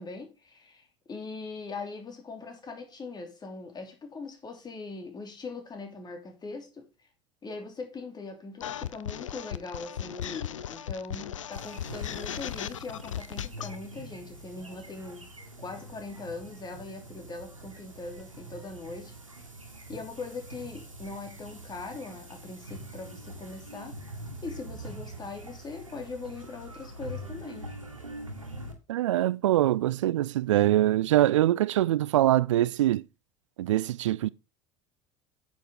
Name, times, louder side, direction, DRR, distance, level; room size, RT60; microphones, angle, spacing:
voice 1, 0.0-6.9 7.4-15.2 15.6-19.1 19.9-24.0 24.4-27.7, left 3 dB, 25° left, 3.1 m, -41 dB
sound 1, 8.6-13.8, left 10 dB, 75° left, 0.6 m, -36 dB
sound 2, 11.5-28.7, right 1 dB, 90° right, 1.8 m, -44 dB
voice 2, 28.9-33.0 33.6-34.3, right 14 dB, 70° right, 0.5 m, -23 dB
9.2 x 7.3 x 3.9 m
figure-of-eight pair, 70°, 16 cm